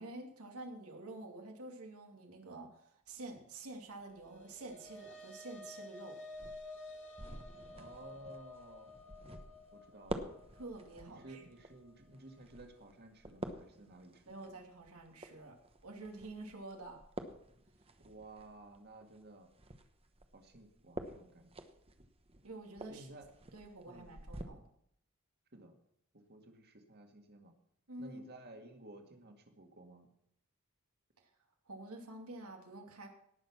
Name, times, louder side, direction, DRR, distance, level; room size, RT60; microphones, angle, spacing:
voice 1, 0.0-6.2 10.5-11.4 14.3-15.5 15.8-17.0 22.4-23.1 23.5-24.6 27.9-28.3 31.7-33.1, right 2 dB, 85° right, 2 dB, 2.6 m, -48 dB
sound 1, 4.1-12.7, left 2 dB, 60° left, 2.6 m, -52 dB
sound 2, 6.3-24.4, right 1 dB, 25° right, 1.1 m, -49 dB
voice 2, 7.7-8.9 9.7-10.3 11.1-14.2 18.0-19.5 20.3-21.5 22.9-23.3 23.9-24.2 25.5-25.8 26.1-27.5 28.0-30.1, right 2 dB, 50° right, 4 dB, 2.1 m, -54 dB
18.0 x 6.5 x 6.0 m, 0.72 s
head